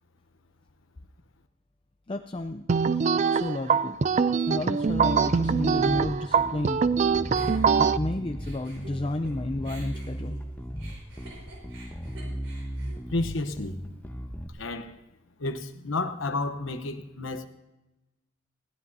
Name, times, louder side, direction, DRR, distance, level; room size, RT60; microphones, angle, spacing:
voice 1, 2.1-2.7 3.3-4.0 4.5-6.8 7.8-10.4, left 1 dB, 25° left, 0.5 m, -32 dB
sound 1, 2.7-8.0, right 6 dB, 35° right, 0.4 m, -23 dB
Bass guitar, 4.9-14.5, equal, 10° left, 1.0 m, -36 dB
Giggle, 7.4-9.3 9.6-13.9, right 2 dB, 80° right, 5.6 m, -48 dB
voice 2, 13.1-14.0 14.6-15.0 15.4-17.5, left 2 dB, 90° left, 1.0 m, -31 dB
20.5 x 16.0 x 2.7 m
head